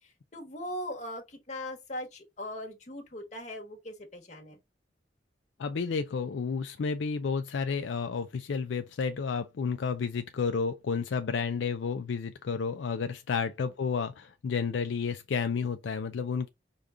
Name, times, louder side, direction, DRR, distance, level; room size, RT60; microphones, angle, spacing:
voice 1, 0.3-4.6, left 1 dB, 40° left, 1.2 m, -39 dB
voice 2, 5.6-16.5, left 5 dB, 80° left, 0.4 m, -31 dB
5.0 x 2.4 x 3.7 m
head